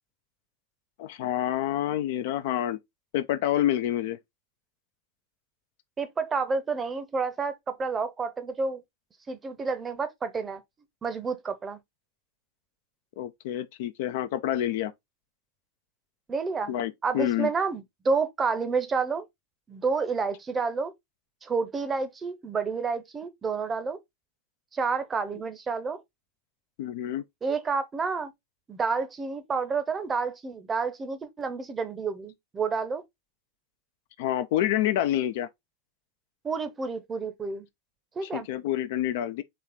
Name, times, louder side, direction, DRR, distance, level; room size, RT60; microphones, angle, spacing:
voice 1, 1.0-2.8 3.1-4.2 13.2-14.9 16.7-17.5 26.8-27.2 34.2-35.5 38.2-39.4, left 12 dB, 50° left, 0.4 m, -28 dB
voice 2, 6.0-8.8 9.3-10.6 11.0-11.8 16.3-16.7 17.0-19.2 19.7-20.9 21.4-24.0 24.7-26.0 27.4-28.3 28.7-33.0 36.4-37.7 38.2-38.5, right 4 dB, 20° right, 0.7 m, -29 dB
4.3 x 3.2 x 3.6 m
figure-of-eight pair, 90°, 0 cm